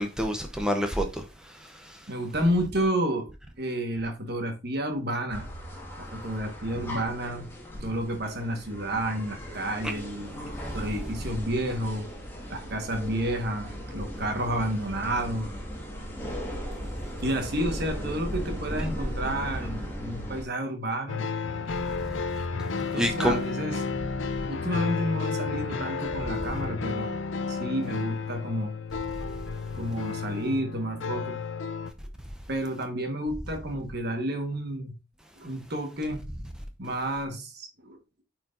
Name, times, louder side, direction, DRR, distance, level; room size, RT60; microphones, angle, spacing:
voice 1, 0.0-2.0 10.6-10.7 23.0-23.4, equal, 5° right, 0.7 m, -28 dB
voice 2, 2.1-3.3 3.6-5.5 6.0-7.5 7.8-10.4 10.7-12.1 12.5-15.5 17.2-21.3 22.8-23.8 24.4-27.2 27.5-28.7 29.7-31.4 32.5-34.9 35.4-36.3 36.8-38.0, right 1 dB, 55° right, 1.4 m, -30 dB
sound 1, 5.3-20.5, equal, 10° left, 1.7 m, -37 dB
sound 2, 21.1-31.9, left 5 dB, 70° left, 0.6 m, -32 dB
9.1 x 4.6 x 2.5 m
head